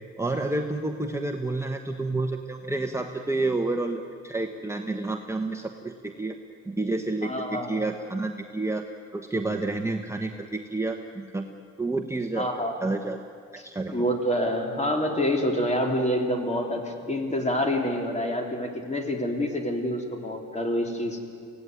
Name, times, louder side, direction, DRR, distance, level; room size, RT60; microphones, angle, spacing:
voice 1, 0.2-6.4 6.7-8.8 9.1-11.5 11.8-12.5 12.8-13.2 13.6-14.0, right 2 dB, 10° right, 3 dB, 1.2 m, -29 dB
voice 2, 7.2-7.8 12.4-12.9 13.6-21.2, equal, 20° left, 3 dB, 3.6 m, -27 dB
24.5 x 17.0 x 9.5 m, 2.3 s
cardioid pair, 90°, 30 cm